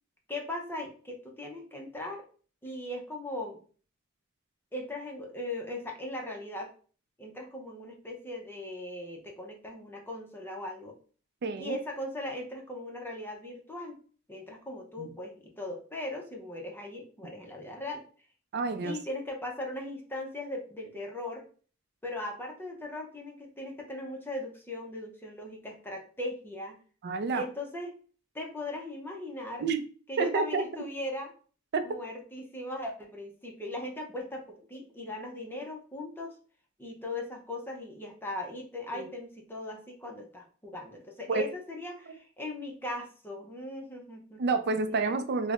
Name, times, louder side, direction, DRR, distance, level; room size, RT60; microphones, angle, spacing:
voice 1, 0.3-2.2 2.6-3.6 4.7-6.7 7.2-10.9 11.6-14.0 14.3-18.0 18.8-21.5 22.0-26.8 27.3-27.9 28.3-29.7 30.1-31.3 31.8-36.4 36.8-44.4 45.1-45.2, left 1 dB, 10° left, 1 dB, 0.5 m, -39 dB
voice 2, 11.4-11.8 15.0-15.1 18.5-19.0 27.0-27.4 29.6-29.8 30.2-30.6 31.7-31.8 38.9-39.1 41.3-41.5 44.4-45.5, right 4 dB, 55° right, 9 dB, 0.4 m, -29 dB
5.1 x 2.1 x 2.4 m, 0.41 s
head